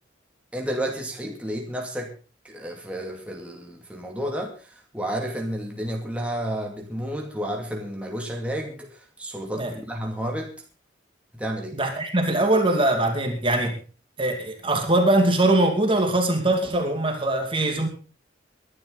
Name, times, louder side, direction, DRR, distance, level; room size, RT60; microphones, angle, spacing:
voice 1, 0.5-2.1 2.4-10.5 11.3-11.8, equal, 5° right, 0 dB, 2.4 m, -31 dB
voice 2, 11.7-13.8 14.2-17.9, right 1 dB, 25° right, 4 dB, 2.4 m, -22 dB
21.0 x 11.0 x 4.1 m, 0.35 s
head